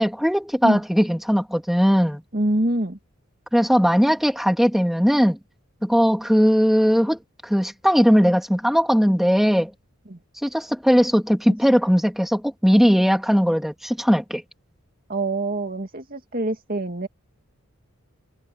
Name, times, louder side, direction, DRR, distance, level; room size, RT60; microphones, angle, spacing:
voice 1, 0.0-2.2 3.5-5.4 5.8-9.7 10.4-14.4, equal, ahead, 3.3 m, -19 dB
voice 2, 2.3-3.0 10.1-10.2 15.1-17.1, right 1 dB, 45° right, 2.2 m, -25 dB
head